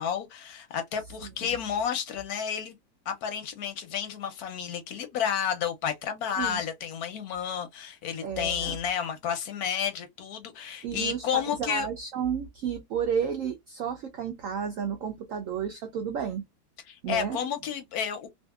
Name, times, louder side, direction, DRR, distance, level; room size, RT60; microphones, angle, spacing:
voice 1, 0.0-2.8 3.1-11.9 16.9-18.3, left 8 dB, 70° left, 1.0 m, -31 dB
voice 2, 8.2-8.8 10.8-16.4 17.0-17.4, right 7 dB, 75° right, 0.7 m, -32 dB
2.6 x 2.6 x 2.3 m
omnidirectional pair, 1.9 m